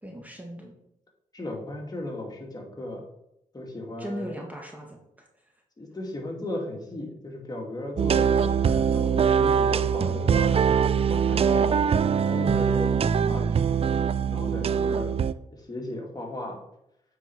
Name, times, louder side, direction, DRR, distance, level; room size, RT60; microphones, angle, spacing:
voice 1, 0.0-0.7 4.0-5.5, equal, 10° right, 0 dB, 1.7 m, -39 dB
voice 2, 1.3-3.0 3.5-4.3 5.8-13.8 14.3-15.2 15.5-16.6, left 1 dB, 30° left, 0 dB, 2.3 m, -36 dB
sound 1, 8.0-15.3, right 7 dB, 45° right, 0.4 m, -23 dB
8.2 x 4.7 x 4.6 m, 0.80 s
cardioid pair, 60°, 14 cm